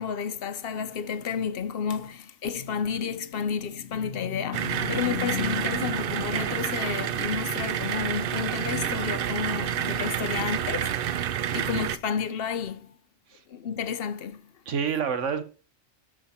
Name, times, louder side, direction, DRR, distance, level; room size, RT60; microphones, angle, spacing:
voice 1, 0.0-11.0 11.5-12.9 13.5-14.4, left 7 dB, 60° left, 0.8 m, -31 dB
sound 1, 4.5-12.0, right 9 dB, 60° right, 0.7 m, -29 dB
voice 2, 11.5-11.9 13.3-13.4 14.7-15.4, right 6 dB, 75° right, 1.4 m, -29 dB
12.5 x 5.1 x 4.3 m
omnidirectional pair, 1.3 m